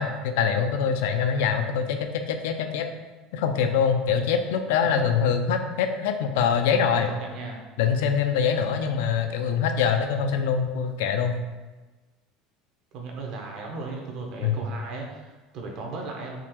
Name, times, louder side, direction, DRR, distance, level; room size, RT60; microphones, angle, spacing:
voice 1, 0.0-2.9 3.3-7.1 7.8-11.4 14.4-14.6, left 7 dB, 80° left, 6 dB, 0.3 m, -24 dB
voice 2, 6.8-7.7 12.9-16.4, right 3 dB, 45° right, 1 dB, 0.7 m, -36 dB
3.6 x 2.8 x 2.9 m, 1.2 s
cardioid pair, 165°, 0 cm